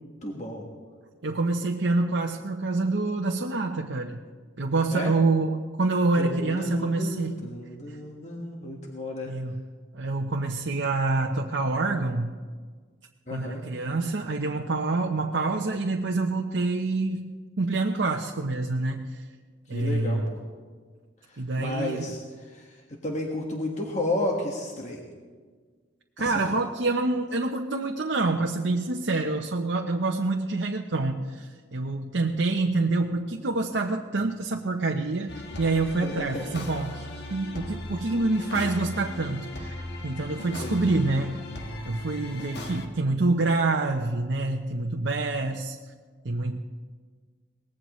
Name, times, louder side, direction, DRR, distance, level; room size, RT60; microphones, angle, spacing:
voice 1, 0.2-0.6 4.9-5.1 6.2-9.3 13.3-13.6 19.7-20.4 21.3-22.8 23.0-25.0 26.2-26.5 36.0-36.4 40.6-41.0, left 1 dB, 40° left, -1 dB, 1.6 m, -32 dB
voice 2, 1.2-4.2 4.6-7.4 9.3-9.6 9.9-12.3 13.3-19.2 19.7-20.3 21.4-22.1 26.2-45.8 46.2-46.6, right 3 dB, 65° right, 1 dB, 0.8 m, -27 dB
sound 1, 35.3-42.9, left 1 dB, 60° left, 1.5 m, -37 dB
23.0 x 19.0 x 3.2 m, 1.5 s
head